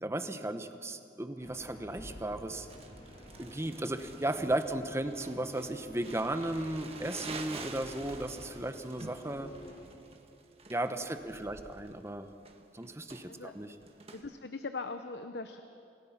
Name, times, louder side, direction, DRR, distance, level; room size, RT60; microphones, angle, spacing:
voice 1, 0.0-2.7 3.4-9.5 10.7-12.3 12.7-13.7, right 1 dB, 15° right, 9 dB, 1.0 m, -35 dB
sound 1, 1.4-9.8, equal, 50° left, 5.9 m, -49 dB
Crumpling crinkling, 2.7-14.2, right 4 dB, 35° right, 1.5 m, -49 dB
voice 2, 14.1-15.6, left 3 dB, 70° left, 8 dB, 0.8 m, -41 dB
27.5 x 18.5 x 5.9 m, 2.6 s
head